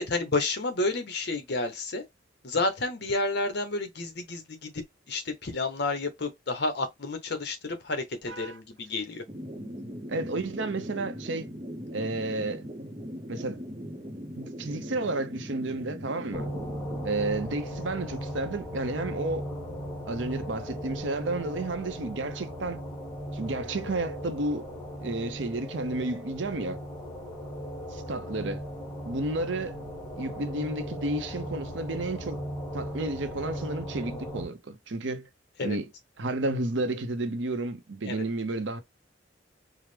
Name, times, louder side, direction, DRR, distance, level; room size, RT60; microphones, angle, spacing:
voice 1, 0.0-2.0 2.4-4.7 5.1-9.2 35.6-35.8 38.1-38.2, left 2 dB, 60° left, 0.9 m, -30 dB
voice 2, 8.3-8.6 10.1-11.5 11.9-12.6 13.3-13.6 14.3-16.5 17.0-19.5 20.1-22.8 23.3-24.7 25.0-26.8 27.9-28.6 29.1-29.8 30.2-32.4 32.7-35.3 35.6-35.9 36.2-38.8, right 2 dB, 75° right, 0.7 m, -31 dB
sound 1, 9.3-17.1, equal, 25° right, 0.7 m, -40 dB
sound 2, 16.3-34.4, equal, 15° left, 1.6 m, -37 dB
4.7 x 2.1 x 3.3 m
head